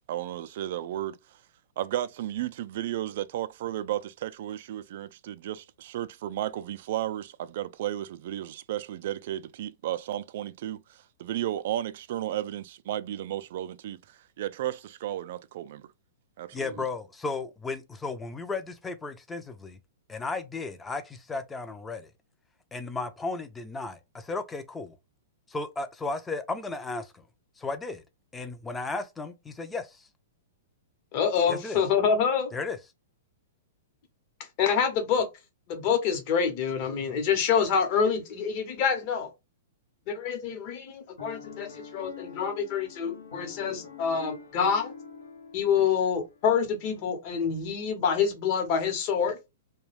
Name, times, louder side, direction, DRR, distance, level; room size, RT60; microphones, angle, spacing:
voice 1, 0.1-1.2 1.8-15.9 16.4-16.8, right 12 dB, 60° right, 0.3 m, -33 dB
voice 2, 16.5-19.8 20.1-22.1 22.7-25.0 25.5-27.2 27.6-28.0 28.3-30.1 31.5-31.8 32.5-32.8, left 3 dB, 10° left, 0.5 m, -34 dB
voice 3, 31.1-32.5 34.6-35.3 35.7-39.3 40.1-44.9 45.5-49.4, left 6 dB, 45° left, 0.9 m, -26 dB
Piano, 41.2-46.5, left 6 dB, 90° left, 0.7 m, -46 dB
2.3 x 2.2 x 3.2 m
hypercardioid pair, 125°, 0 cm